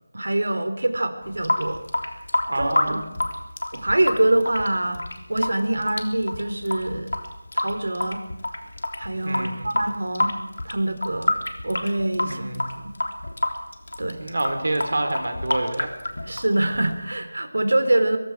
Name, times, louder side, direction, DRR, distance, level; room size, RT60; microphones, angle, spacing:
voice 1, 0.1-1.8 2.5-3.0 3.7-5.0 5.3-7.1 7.5-8.2 9.0-10.3 10.6-11.3 11.6-12.5 12.7-12.9 14.0-14.2 16.2-18.2, right 1 dB, 80° right, 8 dB, 3.6 m, -24 dB
Water tap faucet / Sink (filling or washing) / Drip, 1.2-17.2, left 1 dB, 80° left, 3.2 m, -28 dB
voice 2, 2.5-3.0 9.2-9.7 12.2-12.7 14.2-15.9, right 2 dB, 50° right, 6 dB, 3.9 m, -27 dB
24.0 x 22.5 x 4.9 m, 0.96 s
figure-of-eight pair, 180°, 0 cm